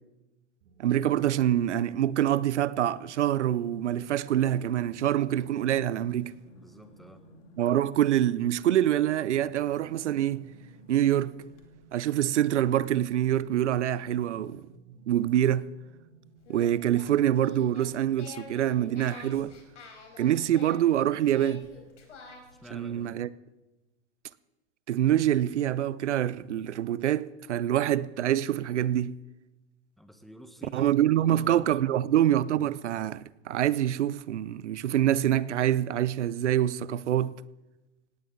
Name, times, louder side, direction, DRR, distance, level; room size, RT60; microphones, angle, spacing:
sound 1, 0.6-18.2, right 5 dB, 55° right, 5.6 m, -57 dB
voice 1, 0.8-6.3 7.6-10.5 10.9-11.3 11.9-14.7 15.1-15.7 16.5-19.6 20.2-21.7 22.7-23.3 24.9-29.2 30.7-37.4, right 11 dB, 75° right, 0.7 m, -25 dB
sound 2, 2.9-12.0, left 4 dB, 50° left, 2.7 m, -58 dB
voice 2, 6.5-7.3 22.6-23.2 30.0-31.7, equal, ahead, 1.4 m, -50 dB
Singing, 16.4-22.6, left 4 dB, 75° left, 4.6 m, -48 dB
18.0 x 17.0 x 4.0 m
hypercardioid pair, 110°, 36 cm